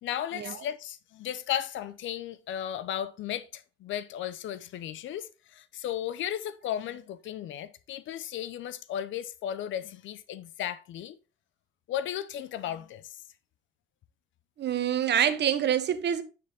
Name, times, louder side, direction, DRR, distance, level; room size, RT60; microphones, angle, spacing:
voice 1, 0.0-11.2 11.9-13.2, left 10 dB, 75° left, 0.5 m, -35 dB
voice 2, 14.6-16.2, right 9 dB, 60° right, 0.9 m, -26 dB
9.3 x 3.4 x 3.3 m
cardioid pair, 90°, 20 cm